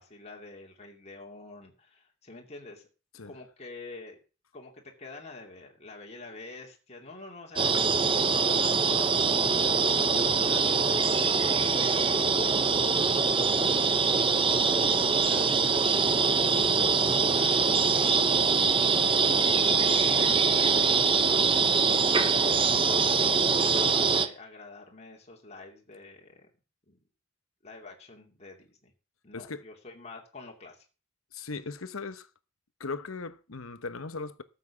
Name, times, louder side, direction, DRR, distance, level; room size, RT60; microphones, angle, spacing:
voice 1, 0.0-2.9 3.3-4.2 4.5-11.3 11.6-12.3 12.8-18.9 19.5-26.5 26.9-27.0 27.6-28.9 29.2-30.8, left 3 dB, 35° left, 2.6 m, -47 dB
sound 1, 7.6-24.3, right 5 dB, 25° right, 1.0 m, -24 dB
voice 2, 29.3-29.6 31.3-32.3 32.8-34.4, left 4 dB, 90° left, 1.0 m, -38 dB
13.5 x 7.4 x 7.1 m
head